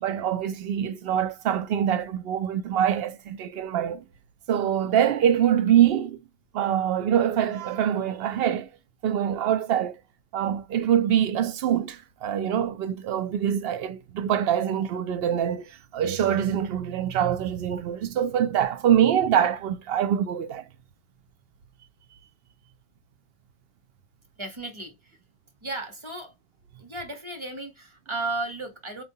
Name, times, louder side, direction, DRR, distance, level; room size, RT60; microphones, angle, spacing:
voice 1, 0.0-4.0 4.5-6.2 6.5-8.7 9.0-10.0 10.3-20.6, right 9 dB, 60° right, 0.7 m, -24 dB
voice 2, 24.4-25.2 25.6-26.3 26.8-29.0, right 2 dB, 25° right, 1.0 m, -34 dB
4.3 x 2.4 x 2.7 m
omnidirectional pair, 1.3 m